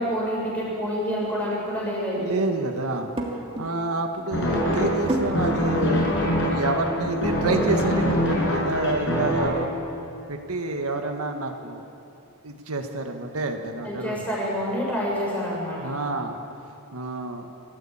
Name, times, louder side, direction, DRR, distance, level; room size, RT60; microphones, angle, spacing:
voice 1, 0.0-2.3 13.8-15.9, equal, 5° left, -4 dB, 6.8 m, -27 dB
voice 2, 2.1-6.1 6.4-9.8 10.3-11.8 12.4-14.2 15.8-16.4 16.9-17.5, right 2 dB, 90° right, 4 dB, 1.7 m, -28 dB
sound 1, 2.9-3.7 4.2-4.3 4.6-5.7 6.1-6.2 6.6-7.6, right 2 dB, 25° right, 2.7 m, -31 dB
sound 2, 4.3-9.5, equal, 60° left, 6.2 m, -24 dB
27.0 x 14.5 x 8.8 m, 2.7 s
head